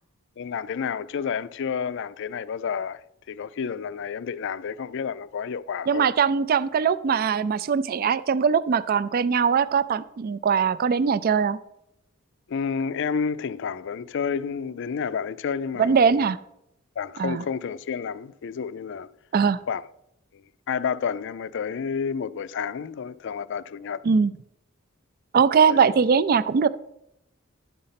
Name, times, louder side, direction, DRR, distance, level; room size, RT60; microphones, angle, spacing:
voice 1, 0.4-6.1 12.5-16.2 17.0-19.1 19.7-19.9 20.3-24.0 25.7-25.8, left 6 dB, 60° left, 0.4 m, -30 dB
voice 2, 5.9-11.6 15.8-16.4 17.2-17.4 19.3-19.6 24.0-24.3 25.3-26.7, right 6 dB, 45° right, 0.4 m, -21 dB
11.5 x 5.3 x 5.7 m
head